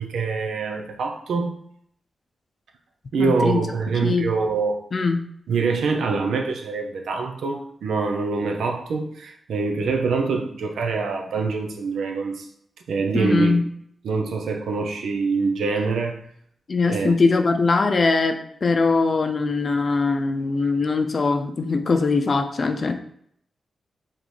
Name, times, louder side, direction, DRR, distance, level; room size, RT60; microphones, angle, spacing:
voice 1, 0.0-1.6 3.1-4.8 5.5-12.5 12.9-13.5 14.0-16.3 16.9-17.2, right 4 dB, 90° right, 3 dB, 0.5 m, -25 dB
voice 2, 3.2-3.7 4.0-4.3 4.9-5.2 13.1-13.6 16.7-22.9, left 4 dB, 55° left, 6 dB, 0.5 m, -21 dB
5.1 x 2.9 x 3.2 m, 0.68 s
cardioid pair, 60°, 0 cm